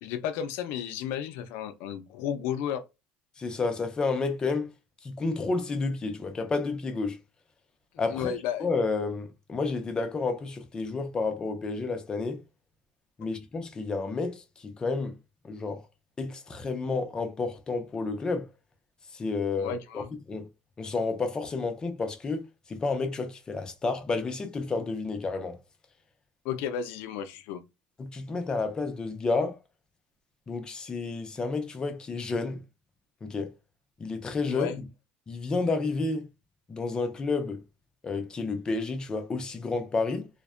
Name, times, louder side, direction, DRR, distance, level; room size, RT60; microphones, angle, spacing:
voice 1, 0.0-2.8 8.1-8.7 19.6-20.1 26.4-27.6 34.5-34.8, left 9 dB, 70° left, 0.5 m, -33 dB
voice 2, 3.4-4.7 5.0-7.2 8.0-8.3 8.6-12.4 13.2-15.1 15.4-15.9 16.2-18.5 19.1-20.0 20.3-20.5 20.8-22.4 22.7-25.6 28.0-29.6 30.5-32.6 33.2-33.5 34.0-34.7 35.3-36.3 36.7-37.6 38.0-40.3, left 3 dB, 20° left, 0.5 m, -30 dB
2.5 x 2.1 x 2.4 m
cardioid pair, 140°, 4 cm